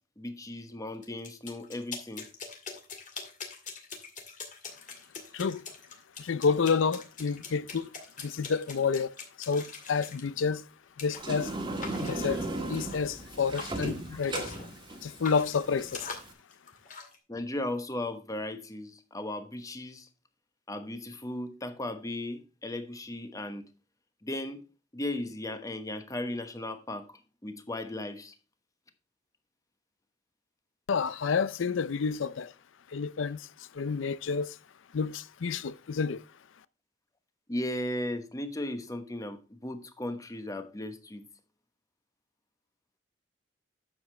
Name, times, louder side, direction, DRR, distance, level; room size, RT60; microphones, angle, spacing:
voice 1, 0.2-2.3 14.1-14.2 17.3-20.1 20.7-23.6 24.2-24.6 24.9-28.3 37.5-41.2, left 1 dB, 20° left, 1.1 m, -36 dB
sound 1, 1.0-10.3 11.0-11.2 11.8-13.2 13.6-14.8 15.0-17.2, left 5 dB, 45° left, 2.1 m, -43 dB
voice 2, 5.3-5.6 6.2-7.9 8.2-10.6 11.0-11.5 12.0-14.5 15.0-16.1 30.9-32.5 32.9-34.6 34.9-36.2, left 5 dB, 90° left, 0.5 m, -30 dB
Sliding door, 11.2-16.3, right 2 dB, 25° right, 1.6 m, -36 dB
9.5 x 7.2 x 3.2 m
head